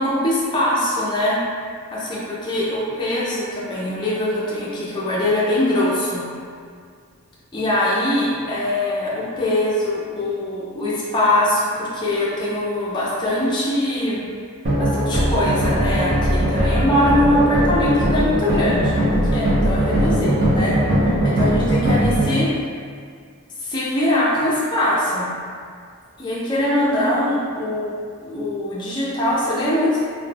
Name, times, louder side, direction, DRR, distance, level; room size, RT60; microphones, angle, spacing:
voice 1, 0.0-1.4 1.9-6.2 7.5-14.3 14.8-19.1 19.3-20.8 21.1-22.5 23.6-25.3 26.2-28.0 28.2-30.1, left 1 dB, 20° left, -7 dB, 0.3 m, -22 dB
sound 1, 14.6-22.3, equal, 45° right, 0.6 m, -19 dB
2.2 x 2.1 x 3.2 m, 2.1 s
head